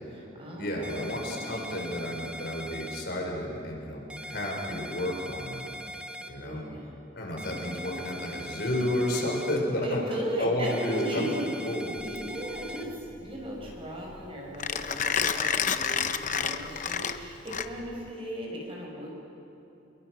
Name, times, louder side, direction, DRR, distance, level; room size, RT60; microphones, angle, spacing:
voice 1, 0.0-1.7 6.4-7.0 9.8-11.4 12.0-19.2, equal, 30° right, -2 dB, 6.1 m, -36 dB
voice 2, 0.6-5.7 6.3-6.6 7.2-10.0 10.4-11.9, left 1 dB, 60° left, 0 dB, 5.3 m, -31 dB
sound 1, 0.8-3.0 4.1-6.3 7.4-9.6 10.6-12.8, equal, 5° right, 1.3 m, -41 dB
Mechanisms, 12.0-18.1, left 7 dB, 45° left, 0.8 m, -30 dB
27.5 x 22.0 x 6.4 m, 2.8 s
head